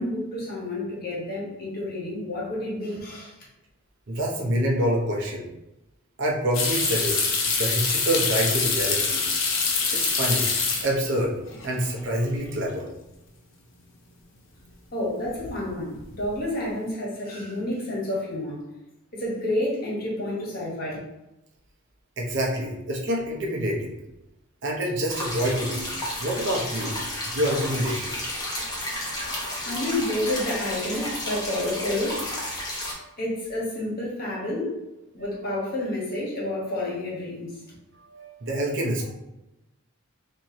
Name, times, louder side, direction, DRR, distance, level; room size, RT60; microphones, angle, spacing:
voice 1, 0.0-3.4 14.9-18.6 19.1-21.0 29.6-32.2 33.2-34.8 35.1-37.6, left 1 dB, 45° left, -5 dB, 1.3 m, -29 dB
voice 2, 4.1-5.5 6.2-7.3 7.6-9.2 9.9-10.5 10.8-11.4 11.6-12.9 22.2-24.0 24.6-25.9 26.2-27.0 27.2-28.2 28.6-29.6 38.1-39.1, right 1 dB, 55° right, -1 dB, 0.7 m, -27 dB
sound 1, 6.5-11.2 11.5-12.1 12.5-12.6 15.2-15.6 15.9-16.5, left 4 dB, 60° left, 0.7 m, -25 dB
sound 2, 25.1-32.9, left 1 dB, 20° left, 0.8 m, -32 dB
4.4 x 2.6 x 3.0 m, 0.93 s
head